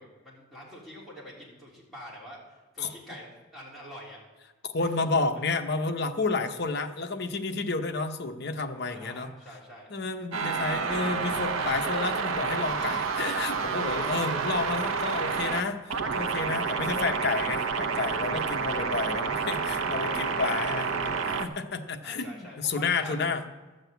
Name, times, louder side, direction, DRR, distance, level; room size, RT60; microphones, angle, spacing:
voice 1, 0.0-4.2 4.8-5.1 8.9-9.9 18.4-18.9 22.0-23.3, equal, ahead, -7 dB, 3.3 m, -46 dB
voice 2, 4.6-9.3 9.9-23.4, left 3 dB, 50° left, 6 dB, 0.8 m, -31 dB
sound 1, 10.3-15.6 15.9-21.5, right 5 dB, 80° right, 0.8 m, -29 dB
12.5 x 6.5 x 8.0 m, 1.2 s
head